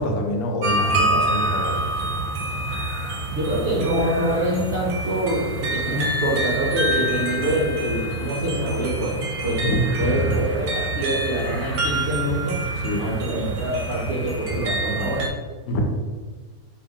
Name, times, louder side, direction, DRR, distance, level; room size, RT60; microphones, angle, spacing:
voice 1, 0.0-1.7 3.5-3.6 9.6-10.4 12.8-13.1 15.7-15.8, equal, 80° left, 1 dB, 1.1 m, -25 dB
sound 1, 0.6-15.3, right 1 dB, 80° right, 1.1 m, -27 dB
voice 2, 3.3-9.7 10.0-12.6 13.0-15.3, right 1 dB, 55° right, -6 dB, 0.9 m, -25 dB
2.7 x 2.7 x 3.5 m, 1.4 s
omnidirectional pair, 1.6 m